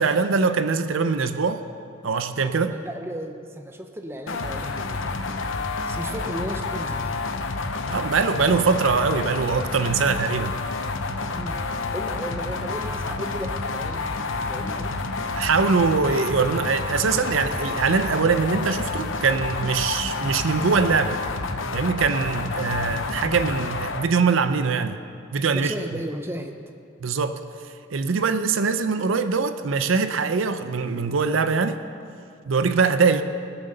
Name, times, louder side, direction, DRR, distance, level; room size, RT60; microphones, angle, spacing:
voice 1, 0.0-1.6 2.0-2.8 7.9-10.5 15.3-21.2 21.7-25.0 25.3-25.7 27.0-27.4 27.9-31.8 32.5-33.2, right 5 dB, 75° right, 10 dB, 0.6 m, -22 dB
voice 2, 2.7-5.0 5.9-7.2 11.3-11.6 11.9-14.9 25.5-26.6, equal, 10° right, 5 dB, 0.7 m, -35 dB
sound 1, 4.3-24.1, left 3 dB, 70° left, 0.8 m, -29 dB
19.0 x 7.2 x 6.6 m, 2.5 s
head